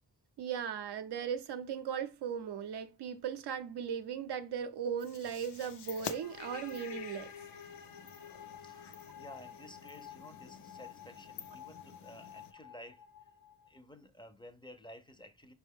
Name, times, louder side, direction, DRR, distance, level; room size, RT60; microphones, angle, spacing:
voice 1, 0.4-7.3, right 7 dB, 90° right, 0.5 m, -38 dB
sound 1, 5.0-12.5, left 7 dB, 80° left, 0.6 m, -49 dB
sound 2, 6.1-13.8, left 8 dB, 55° left, 0.9 m, -51 dB
voice 2, 8.6-13.1 13.7-15.5, equal, 15° left, 0.4 m, -53 dB
4.6 x 2.2 x 3.4 m
wide cardioid pair, 95°, 39 cm